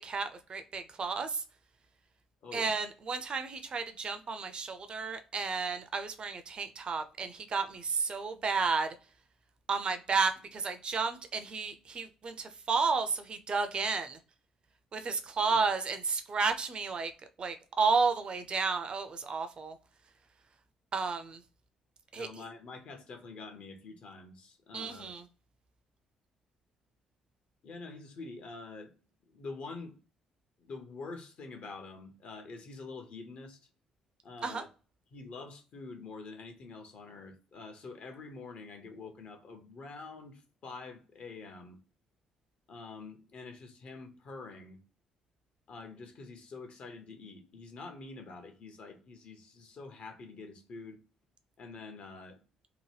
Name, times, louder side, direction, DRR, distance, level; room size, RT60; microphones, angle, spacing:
voice 1, 0.0-1.4 2.5-8.9 9.7-14.2 14.9-17.1 17.4-19.8 20.9-21.4 22.1-22.4 24.7-25.2 34.4-34.6, right 4 dB, 40° right, 0.5 m, -32 dB
voice 2, 2.4-2.7 15.5-15.6 22.1-25.1 27.6-28.9 29.3-30.0 30.6-33.6 34.2-34.7 35.1-41.8 42.7-44.8 45.7-51.0 51.6-52.4, left 3 dB, 50° left, 0.7 m, -46 dB
2.8 x 2.1 x 3.1 m
figure-of-eight pair, 45°, 3 cm